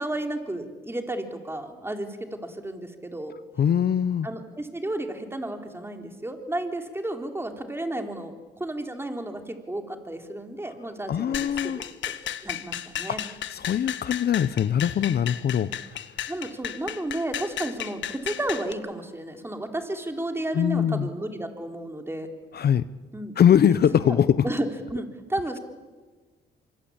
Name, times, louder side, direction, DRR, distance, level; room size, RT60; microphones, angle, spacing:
voice 1, 0.0-3.3 4.2-12.2 12.4-13.2 15.6-15.7 16.3-22.3 23.1-23.5 24.1-24.2 24.4-25.6, right 1 dB, 10° right, 4 dB, 3.9 m, -32 dB
voice 2, 3.6-4.3 11.1-11.8 13.1-16.2 20.5-21.1 22.5-22.8 23.4-24.4, left 9 dB, 55° left, 15 dB, 0.8 m, -22 dB
sound 1, 11.3-18.7, left 11 dB, 70° left, 1.4 m, -34 dB
25.0 x 24.5 x 8.8 m, 1.3 s
cardioid pair, 90°, 20 cm